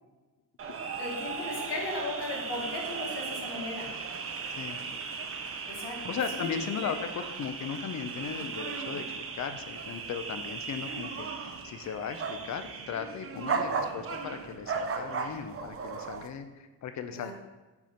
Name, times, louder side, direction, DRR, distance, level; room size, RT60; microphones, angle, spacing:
sound 1, 0.6-16.3, right 5 dB, 35° right, 0.5 m, -36 dB
voice 1, 1.0-3.9 5.6-6.6 6.8-6.9 13.3-13.6 17.1-17.3, left 2 dB, 85° left, -1 dB, 1.8 m, -37 dB
voice 2, 4.5-5.0 6.1-9.1 9.3-17.3, left 7 dB, 45° left, 9 dB, 0.6 m, -37 dB
6.0 x 4.3 x 5.2 m, 1.2 s
wide cardioid pair, 160°, 41 cm